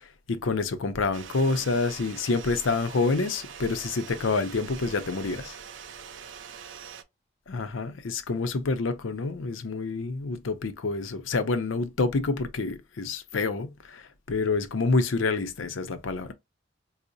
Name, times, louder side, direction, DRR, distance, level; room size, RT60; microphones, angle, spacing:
voice 1, 0.0-5.6 7.5-16.3, left 3 dB, 90° left, 0.5 m, -28 dB
sound 1, 1.1-7.0, right 7 dB, 80° right, 0.5 m, -43 dB
4.6 x 2.0 x 2.6 m
head